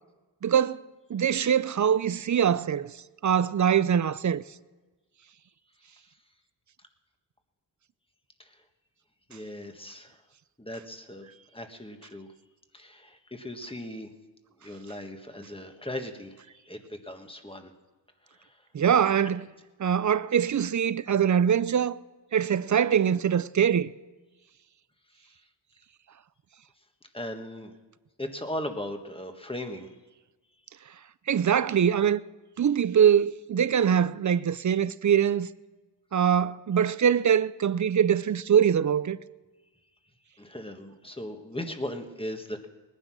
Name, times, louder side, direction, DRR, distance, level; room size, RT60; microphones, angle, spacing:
voice 1, 0.4-0.8 1.1-2.9 3.2-4.4 18.7-19.5 19.8-22.0 22.3-23.9 31.3-32.2 32.6-35.5 36.1-39.2, right 8 dB, 40° right, 0.5 m, -23 dB
voice 2, 9.3-10.2 10.6-12.3 12.7-14.1 14.6-16.3 16.6-17.7 18.4-18.6 27.1-27.7 28.2-29.9 40.4-42.7, left 1 dB, 10° left, 1.4 m, -38 dB
20.0 x 9.9 x 6.3 m
wide cardioid pair, 85°, 44 cm